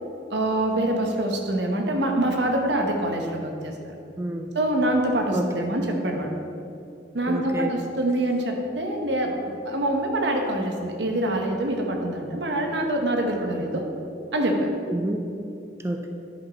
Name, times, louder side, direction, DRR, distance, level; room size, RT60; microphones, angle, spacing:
voice 1, 0.3-3.7 4.5-6.3 7.1-13.8 14.3-14.7, right 1 dB, 80° right, 2 dB, 1.1 m, -25 dB
voice 2, 4.2-4.5 5.3-5.7 7.3-7.7 14.9-15.2 15.8-16.1, right 1 dB, 15° right, 3 dB, 0.4 m, -29 dB
10.5 x 5.5 x 4.1 m, 2.6 s
head